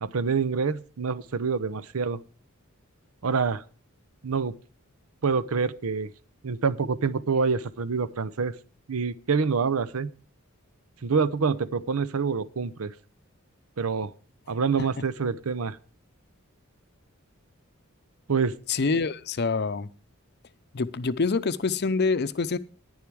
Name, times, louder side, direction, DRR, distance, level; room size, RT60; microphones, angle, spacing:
voice 1, 0.0-2.2 3.2-3.6 4.2-4.5 5.2-6.1 6.4-8.5 8.9-10.1 11.0-12.9 13.8-14.1 14.5-15.8 18.3-18.5, right 5 dB, 85° right, 15 dB, 0.7 m, -26 dB
voice 2, 18.7-19.9 20.7-22.6, left 4 dB, 50° left, 15 dB, 0.6 m, -26 dB
10.5 x 10.5 x 4.7 m, 0.39 s
head